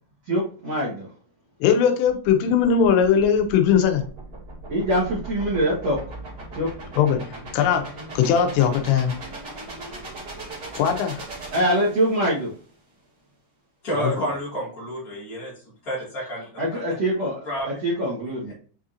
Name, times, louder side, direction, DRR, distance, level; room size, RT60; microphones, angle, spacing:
voice 1, 0.3-1.1 4.7-6.0 6.5-6.7 11.5-12.5 16.6-17.4 17.6-18.5, equal, 85° right, -6 dB, 1.4 m, -23 dB
voice 2, 1.6-4.0 7.0-7.2 7.5-7.9 8.2-9.1 10.8-11.2 14.0-14.1, left 7 dB, 90° left, 6 dB, 3.0 m, -19 dB
sound 1, 2.1-12.4, right 2 dB, 65° right, 1.0 m, -38 dB
voice 3, 13.8-16.8 17.4-17.7, equal, 65° left, -6 dB, 0.9 m, -30 dB
7.1 x 2.5 x 2.7 m, 0.43 s
omnidirectional pair, 5.0 m